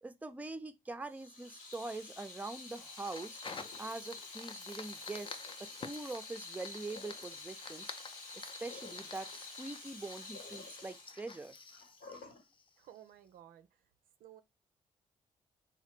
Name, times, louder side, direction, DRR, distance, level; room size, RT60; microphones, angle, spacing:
voice 1, 0.0-3.4 3.8-7.9 8.3-11.6, right 2 dB, 10° right, 0.5 m, -44 dB
Water tap faucet / Sink (filling or washing), 1.1-12.4, left 3 dB, 80° left, 1.2 m, -49 dB
Fire, 1.7-13.1, left 4 dB, 35° left, 0.5 m, -51 dB
voice 2, 12.8-13.9 14.2-14.4, right 11 dB, 70° right, 0.5 m, -56 dB
3.1 x 2.2 x 2.9 m
hypercardioid pair, 45°, 15 cm